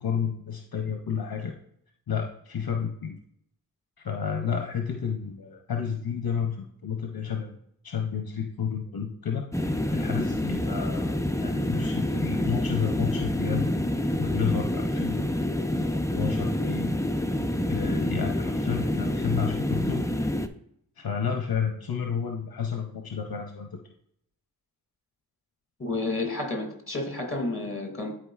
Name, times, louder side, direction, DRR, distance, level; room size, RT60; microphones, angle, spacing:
voice 1, 0.0-1.5 2.1-3.2 4.0-7.6 7.8-9.5 9.9-13.7 14.2-15.3 15.9-17.0 17.7-20.1 21.0-23.8, left 7 dB, 70° left, 3 dB, 0.7 m, -31 dB
sound 1, 9.5-20.5, left 1 dB, 10° left, 0.5 m, -27 dB
voice 2, 25.8-28.1, left 2 dB, 35° left, 2 dB, 2.2 m, -30 dB
11.5 x 4.8 x 2.4 m, 0.70 s
wide cardioid pair, 50°, 37 cm